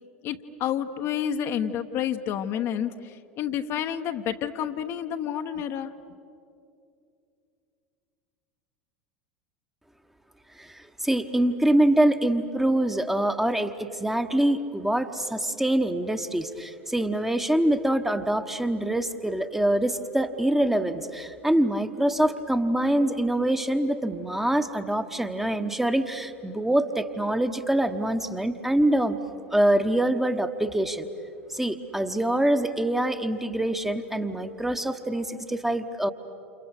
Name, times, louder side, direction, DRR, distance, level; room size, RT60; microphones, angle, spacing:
voice 1, 0.2-5.9, left 9 dB, 45° left, 6 dB, 1.1 m, -29 dB
voice 2, 10.6-29.2 29.5-31.1 31.5-36.1, right 1 dB, 5° right, 7 dB, 1.2 m, -25 dB
29.0 x 29.0 x 6.6 m, 2.6 s
figure-of-eight pair, 80°, 6 cm